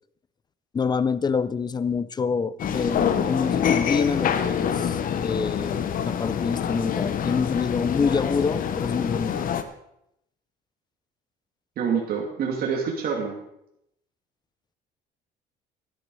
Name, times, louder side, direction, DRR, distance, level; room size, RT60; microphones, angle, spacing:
voice 1, 0.7-9.5, left 5 dB, 25° left, 18 dB, 0.5 m, -26 dB
sound 1, 2.6-9.6, left 8 dB, 55° left, 1.1 m, -26 dB
voice 2, 11.8-13.4, right 6 dB, 65° right, -1 dB, 2.5 m, -26 dB
12.0 x 11.5 x 4.8 m, 0.78 s
cardioid pair, 110°, 17 cm